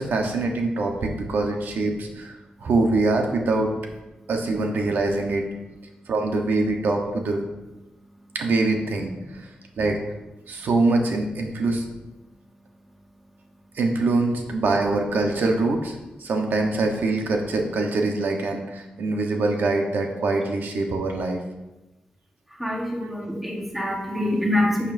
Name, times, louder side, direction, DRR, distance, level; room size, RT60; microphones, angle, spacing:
voice 1, 0.0-3.7 4.3-5.5 6.1-7.5 8.3-9.5 9.8-10.0 10.5-11.8 13.7-21.4 23.0-23.2 24.1-24.3, right 3 dB, 75° right, 2 dB, 1.1 m, -24 dB
voice 2, 22.6-24.9, left 1 dB, 5° right, -1 dB, 1.3 m, -25 dB
11.0 x 7.0 x 2.7 m, 1.0 s
wide cardioid pair, 175°, 3 cm